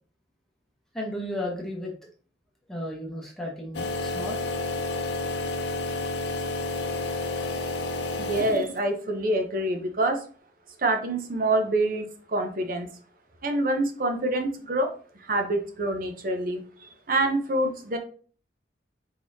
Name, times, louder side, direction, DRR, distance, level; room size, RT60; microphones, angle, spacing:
voice 1, 0.9-1.9 2.7-4.8, left 1 dB, ahead, -3 dB, 0.9 m, -34 dB
sound 1, 3.7-8.9, left 2 dB, 70° left, 0.7 m, -30 dB
voice 2, 8.2-10.2 10.8-12.9 13.4-14.9 15.3-16.6 17.1-18.0, right 1 dB, 50° right, 5 dB, 0.8 m, -26 dB
4.7 x 3.7 x 2.7 m, 0.42 s
head